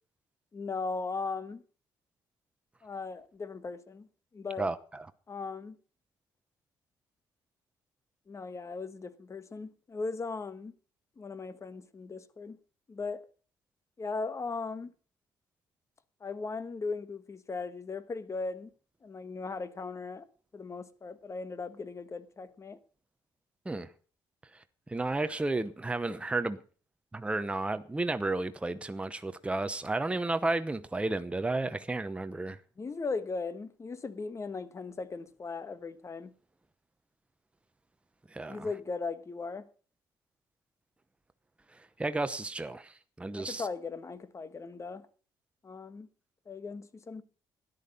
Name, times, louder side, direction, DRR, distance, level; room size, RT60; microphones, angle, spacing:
voice 1, 0.5-1.6 2.8-4.1 4.3-4.7 5.3-5.8 8.3-10.7 11.2-12.6 12.9-13.2 14.0-14.9 16.2-18.7 19.0-20.2 20.5-22.8 32.8-36.3 38.5-39.7 43.4-45.1 45.6-46.1 46.5-47.2, left 4 dB, 35° left, 1.3 m, -38 dB
voice 2, 4.6-5.1 23.6-23.9 24.9-26.6 27.1-32.6 38.3-38.7 41.7-43.7, right 2 dB, 15° right, 0.8 m, -32 dB
13.0 x 10.5 x 5.3 m
supercardioid pair, 75°, 9 cm